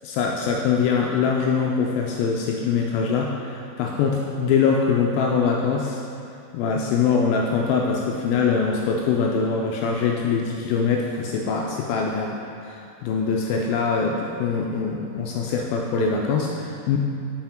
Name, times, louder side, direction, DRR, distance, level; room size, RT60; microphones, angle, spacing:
voice 1, 0.0-6.0 6.5-12.4 12.6-17.0, left 5 dB, 85° left, -1 dB, 2.1 m, -23 dB
6.3 x 5.7 x 4.4 m, 2.5 s
omnidirectional pair, 4.7 m